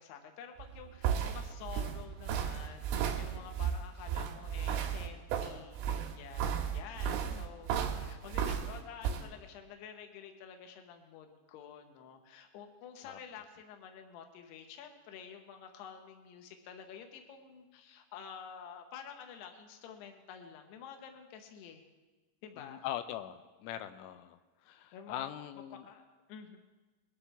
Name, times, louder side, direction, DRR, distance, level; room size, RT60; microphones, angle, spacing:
voice 1, 0.0-21.8 22.4-22.8 24.9-25.3 25.8-26.6, left 7 dB, 70° left, 4 dB, 3.0 m, -50 dB
sound 1, 0.6-9.2, right 8 dB, 85° right, 3.9 m, -34 dB
voice 2, 7.1-7.4 13.0-13.2 22.6-24.4 24.6-25.9, left 12 dB, 85° left, 9 dB, 3.2 m, -42 dB
22.0 x 12.0 x 3.5 m, 1.2 s
omnidirectional pair, 5.7 m